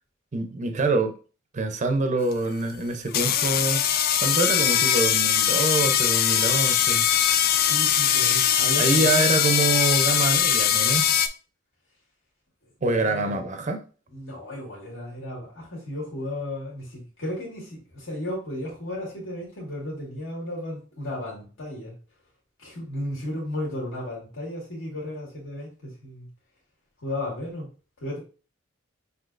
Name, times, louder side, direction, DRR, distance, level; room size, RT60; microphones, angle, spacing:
voice 1, 0.3-1.1 1.5-3.8 4.2-7.4 8.8-11.1 12.8-13.8, right 3 dB, 40° right, 0.5 m, -25 dB
sound 1, 2.3-2.4 3.1-11.3, left 10 dB, 50° left, 0.4 m, -21 dB
voice 2, 7.6-9.5 13.0-13.4 14.1-22.0 22.6-26.3 27.0-27.7 28.0-28.2, left 1 dB, 75° left, 1.8 m, -34 dB
5.8 x 2.8 x 2.5 m
head